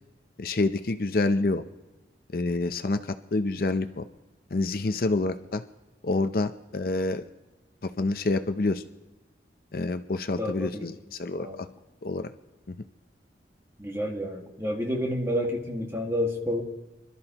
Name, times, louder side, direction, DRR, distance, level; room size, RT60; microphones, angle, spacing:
voice 1, 0.4-1.6 2.3-3.0 3.3-4.0 4.5-5.6 6.0-7.3 7.8-8.8 9.7-11.7 12.0-12.3 12.7-12.8, left 2 dB, 50° left, 9 dB, 0.5 m, -27 dB
voice 2, 10.4-10.9 11.4-11.6 13.8-16.6, equal, 15° right, 0 dB, 1.8 m, -29 dB
26.0 x 13.0 x 2.9 m, 1.1 s
head